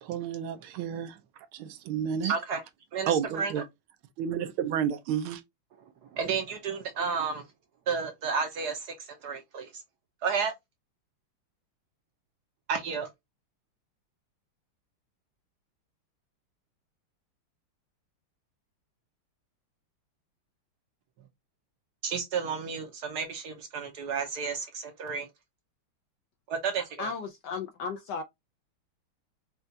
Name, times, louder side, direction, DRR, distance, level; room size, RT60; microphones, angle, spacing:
voice 1, 0.0-1.2 1.5-2.3 3.1-3.6 4.2-5.4, right 8 dB, 80° right, 1.5 m, -31 dB
voice 2, 2.2-2.6 2.9-3.5 6.1-7.4 7.9-9.7 10.2-10.5 12.7-13.1 22.0-25.3 26.5-27.1, right 5 dB, 65° right, 1.1 m, -32 dB
voice 3, 27.0-28.2, left 5 dB, 75° left, 1.0 m, -35 dB
5.5 x 2.4 x 2.6 m
omnidirectional pair, 2.3 m